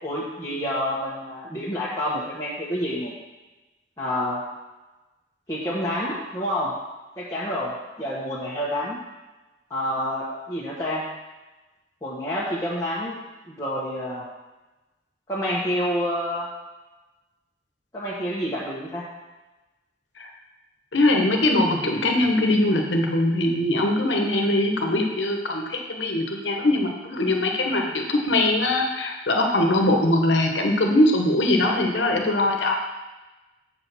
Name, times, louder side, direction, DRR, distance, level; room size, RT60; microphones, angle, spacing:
voice 1, 0.0-3.1 4.0-4.4 5.5-6.7 7.2-9.0 9.7-11.0 12.0-13.1 13.5-14.2 15.3-16.5 17.9-19.0, equal, 20° left, -8 dB, 1.2 m, -28 dB
voice 2, 20.9-32.8, left 1 dB, 85° left, 2 dB, 1.2 m, -22 dB
7.2 x 4.9 x 6.2 m, 1.1 s
head